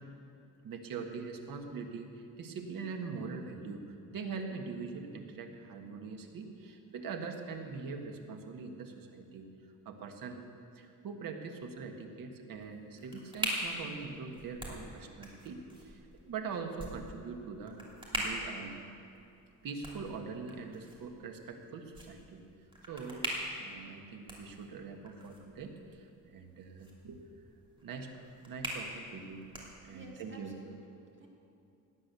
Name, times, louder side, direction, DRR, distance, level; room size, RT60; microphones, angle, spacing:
voice 1, 0.6-9.5 9.8-10.4 10.7-17.8 18.1-18.8 19.6-22.4 22.9-23.3 23.6-27.2 27.8-28.1 28.4-29.4 29.8-30.5, right 5 dB, 85° right, 4 dB, 1.7 m, -43 dB
sound 1, 12.5-30.2, right 1 dB, 15° right, 2.9 m, -43 dB
voice 2, 29.9-31.3, right 1 dB, 35° right, 0 dB, 2.3 m, -53 dB
18.0 x 10.0 x 6.9 m, 2.6 s
cardioid pair, 150°, 33 cm